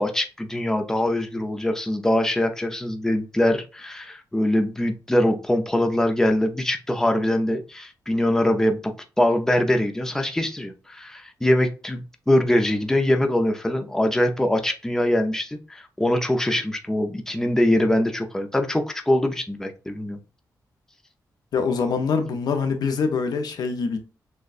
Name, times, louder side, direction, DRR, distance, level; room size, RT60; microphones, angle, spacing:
voice 1, 0.0-8.9 9.2-20.2, left 1 dB, 5° left, 0.6 m, -23 dB
voice 2, 21.5-24.0, left 5 dB, 85° left, 0.7 m, -24 dB
6.3 x 2.2 x 2.5 m
wide cardioid pair, 120°, 7 cm